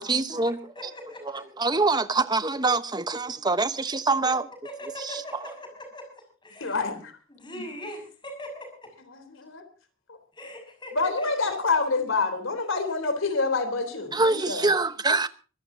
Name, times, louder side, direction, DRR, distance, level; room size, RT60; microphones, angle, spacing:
voice 1, 0.0-0.6 1.2-4.5 5.0-5.4 14.1-15.3, right 3 dB, 20° right, 1.0 m, -25 dB
voice 2, 0.7-1.4 4.6-6.1 6.4-6.8 7.3-8.9 10.3-11.3, equal, 20° left, 6.1 m, -40 dB
voice 3, 6.6-7.1 7.5-7.6 9.1-9.6 11.0-14.7, left 4 dB, 70° left, 3.6 m, -27 dB
24.0 x 16.0 x 2.8 m
head